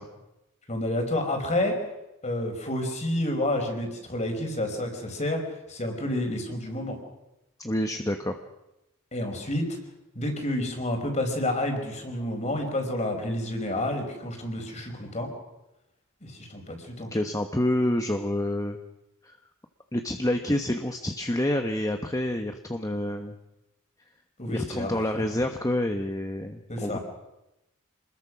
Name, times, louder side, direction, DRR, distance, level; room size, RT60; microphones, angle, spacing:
voice 1, 0.7-1.8 2.2-5.4 5.7-7.0 9.1-9.8 10.1-15.3 16.2-17.1 24.4-25.2 26.7-27.0, left 1 dB, 35° left, 4 dB, 4.8 m, -29 dB
voice 2, 7.6-8.3 17.0-18.8 19.2-19.4 19.9-23.4 24.5-27.0, left 1 dB, 15° left, 5 dB, 1.2 m, -28 dB
27.0 x 21.0 x 6.2 m, 0.93 s
head